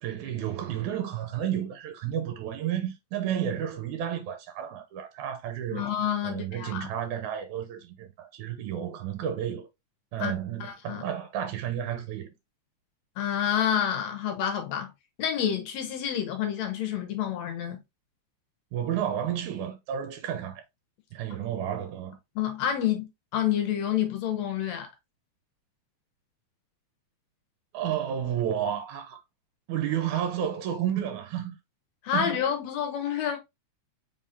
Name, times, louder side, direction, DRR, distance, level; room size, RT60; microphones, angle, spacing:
voice 1, 0.0-5.9 6.2-9.7 10.1-12.3 18.7-20.6 21.1-22.2 27.7-29.2 29.7-31.6 32.1-32.4, right 10 dB, 90° right, 2.3 m, -31 dB
voice 2, 5.7-6.9 10.2-10.3 10.6-11.0 13.2-14.9 15.2-17.8 22.4-24.9 32.0-33.4, left 9 dB, 70° left, 1.9 m, -28 dB
4.8 x 3.8 x 2.7 m
omnidirectional pair, 3.4 m